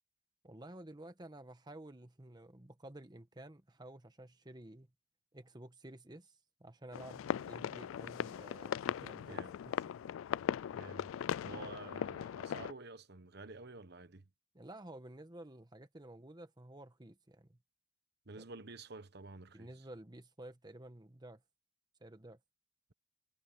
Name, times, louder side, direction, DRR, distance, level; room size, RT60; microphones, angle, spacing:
voice 1, 0.4-4.9 5.3-9.8 11.5-11.8 14.5-17.6 19.5-21.4 22.0-22.4, right 1 dB, 20° right, 1.2 m, -52 dB
sound 1, 6.9-12.7, left 9 dB, 90° left, 0.3 m, -39 dB
voice 2, 9.2-9.6 10.7-11.1 11.4-14.3 18.3-19.9, right 3 dB, 55° right, 1.3 m, -50 dB
head